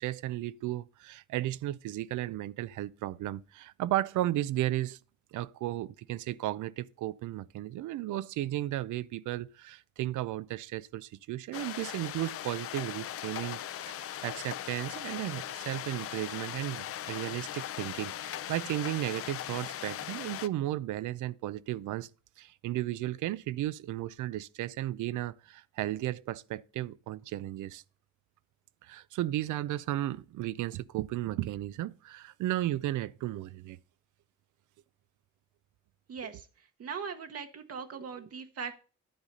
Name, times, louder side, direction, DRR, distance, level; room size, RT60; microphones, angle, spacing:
voice 1, 0.0-5.0 5.3-13.6 13.9-22.1 22.4-27.8 28.8-33.8 36.2-36.4, right 14 dB, 80° right, 0.5 m, -34 dB
sound 1, 11.5-20.5, left 11 dB, 50° left, 0.5 m, -39 dB
voice 2, 36.1-36.4 36.8-38.8, right 6 dB, 50° right, 1.0 m, -39 dB
10.0 x 4.0 x 6.6 m
cardioid pair, 90°, 30 cm